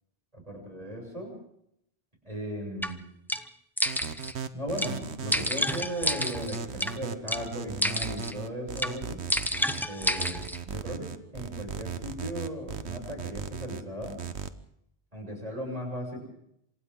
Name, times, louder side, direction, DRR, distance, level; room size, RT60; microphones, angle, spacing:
voice 1, 0.3-1.4 2.2-3.0 4.5-9.2 9.8-14.2 15.1-16.3, equal, 35° right, -1 dB, 7.5 m, -37 dB
sound 1, 2.8-2.9 3.3-3.4 3.8-4.3 4.8-4.9 5.3-6.9 7.3-7.4 7.8-8.3 8.8-8.9 9.3-10.6, equal, ahead, 0.8 m, -29 dB
sound 2, 3.9-14.5, right 6 dB, 85° right, 1.4 m, -37 dB
28.0 x 26.0 x 3.8 m, 0.74 s
omnidirectional pair, 1.1 m